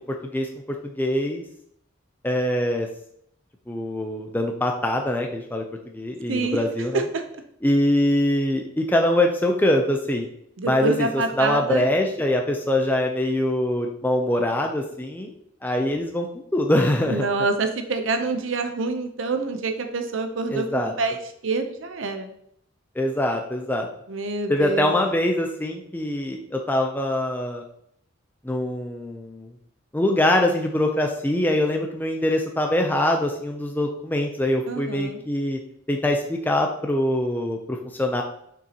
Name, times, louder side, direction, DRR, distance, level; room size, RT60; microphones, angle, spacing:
voice 1, 0.8-1.4 2.2-2.9 3.7-5.6 5.9-7.0 7.6-10.3 10.7-15.3 15.6-17.3 20.5-20.9 23.0-23.9 24.5-27.6 28.4-29.5 29.9-35.6 35.9-38.2, left 1 dB, 10° left, 2 dB, 0.5 m, -23 dB
voice 2, 6.3-6.6 6.9-7.0 10.6-11.9 17.1-21.2 21.4-22.3 24.1-25.0 34.7-35.2, right 3 dB, 70° right, 6 dB, 0.7 m, -26 dB
6.7 x 6.1 x 2.9 m, 0.70 s
head